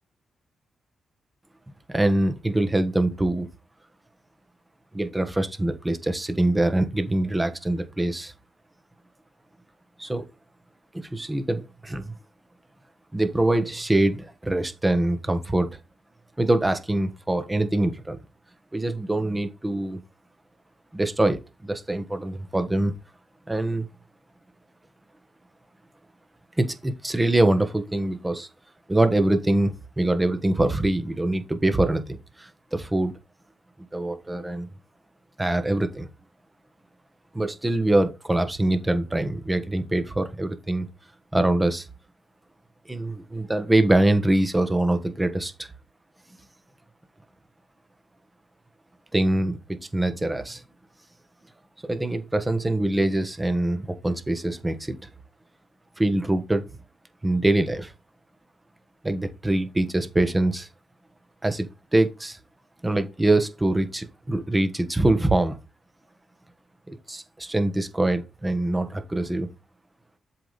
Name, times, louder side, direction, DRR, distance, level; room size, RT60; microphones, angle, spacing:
voice 1, 1.9-3.5 4.9-8.3 10.0-10.2 10.9-12.1 13.1-15.7 16.4-18.2 18.7-20.0 20.9-22.9 23.5-23.9 26.6-28.5 28.9-33.1 33.9-34.7 35.4-36.1 37.3-40.9 41.3-41.9 42.9-45.7 49.1-50.6 51.8-55.1 56.0-56.6 57.2-57.9 59.0-60.7 61.4-62.4 62.8-65.6 66.9-69.5, right 1 dB, 15° right, 1.3 m, -24 dB
7.6 x 4.9 x 4.1 m
cardioid pair, 90°, 0 cm